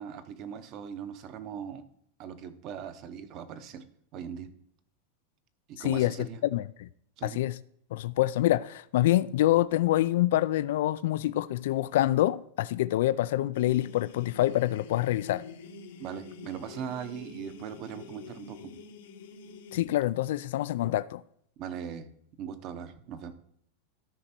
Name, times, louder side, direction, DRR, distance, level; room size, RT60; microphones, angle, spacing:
voice 1, 0.0-1.8 2.2-3.8 4.1-4.5 5.7-6.4 7.2-7.4 16.0-18.7 21.6-22.1 22.4-23.3, right 8 dB, 40° right, 0.9 m, -40 dB
voice 2, 5.8-6.1 6.4-6.9 7.2-7.6 7.9-15.4 19.7-21.2, left 14 dB, 70° left, 0.3 m, -26 dB
sound 1, 13.5-19.8, left 5 dB, 85° left, 1.5 m, -46 dB
13.0 x 5.2 x 4.4 m
supercardioid pair, 155°, 0 cm